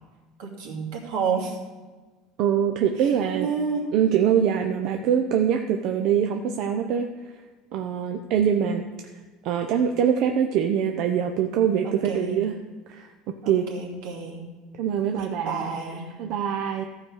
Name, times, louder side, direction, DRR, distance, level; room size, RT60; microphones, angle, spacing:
voice 1, 0.4-1.6 3.0-3.9 11.8-12.4 13.4-14.4 15.2-16.0, right 5 dB, 80° right, -1 dB, 2.6 m, -30 dB
voice 2, 2.4-3.5 3.9-7.1 7.7-8.8 9.4-12.5 12.9-13.1 13.5-13.7 14.8-16.8, right 8 dB, 55° right, 4 dB, 0.6 m, -23 dB
14.0 x 4.9 x 6.3 m, 1.3 s
cardioid pair, 145°, 0 cm